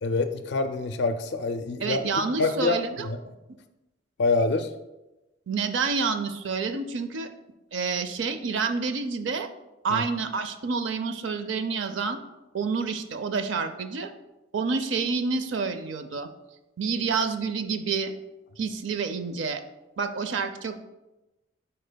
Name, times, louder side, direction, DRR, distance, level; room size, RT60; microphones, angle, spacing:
voice 1, 0.0-2.0 2.4-3.2 4.2-4.7 9.9-10.0, left 3 dB, 65° left, 8 dB, 0.4 m, -26 dB
voice 2, 1.8-3.1 5.5-7.3 7.7-9.5 9.8-12.2 12.5-14.1 14.5-16.3 16.8-18.1 18.6-19.6 20.0-20.8, right 5 dB, 75° right, 9 dB, 0.5 m, -28 dB
10.0 x 4.3 x 2.2 m, 1.0 s
head